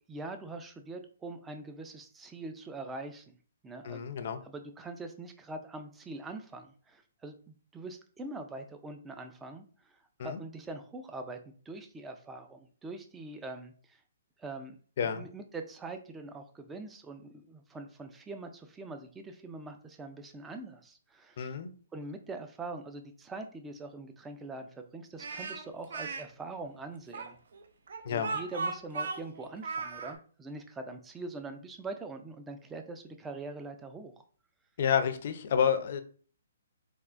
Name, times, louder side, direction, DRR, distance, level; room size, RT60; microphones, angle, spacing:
voice 1, 0.1-3.4 3.6-4.0 4.4-9.6 10.2-13.7 14.4-14.8 15.0-21.5 21.9-27.4 28.0-34.2, right 3 dB, 10° right, 6 dB, 0.3 m, -43 dB
voice 2, 3.8-4.4 10.2-10.4 15.0-15.3 21.4-21.7 28.1-28.4 34.8-36.0, left 7 dB, 55° left, 9 dB, 0.4 m, -29 dB
Speech, 25.2-26.2 27.1-30.1, right 4 dB, 70° right, 0.5 m, -36 dB
3.5 x 2.3 x 2.5 m, 0.43 s
hypercardioid pair, 150°, 0 cm